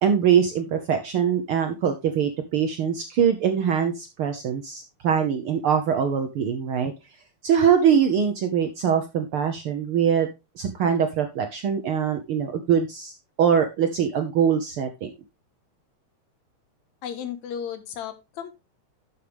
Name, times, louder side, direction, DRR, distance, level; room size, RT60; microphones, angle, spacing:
voice 1, 0.0-6.9 7.4-10.3 10.6-13.1 13.4-15.1, right 7 dB, 70° right, 6 dB, 1.3 m, -23 dB
voice 2, 17.0-18.5, left 8 dB, 75° left, 9 dB, 2.4 m, -34 dB
11.5 x 6.5 x 3.4 m, 0.24 s
omnidirectional pair, 3.4 m